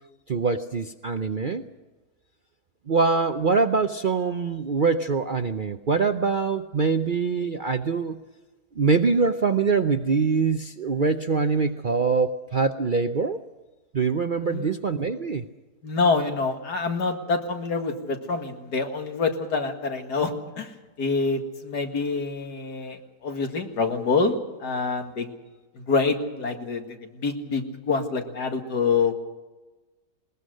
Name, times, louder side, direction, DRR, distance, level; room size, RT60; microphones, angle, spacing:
voice 1, 0.3-1.6 2.9-8.2 8.8-13.4 13.9-15.4, right 4 dB, 50° right, 8 dB, 0.6 m, -24 dB
voice 2, 15.8-20.7 21.0-24.4 24.6-25.3 25.8-29.1, left 4 dB, 85° left, 4 dB, 2.5 m, -26 dB
20.5 x 20.0 x 6.4 m, 1.2 s
omnidirectional pair, 1.7 m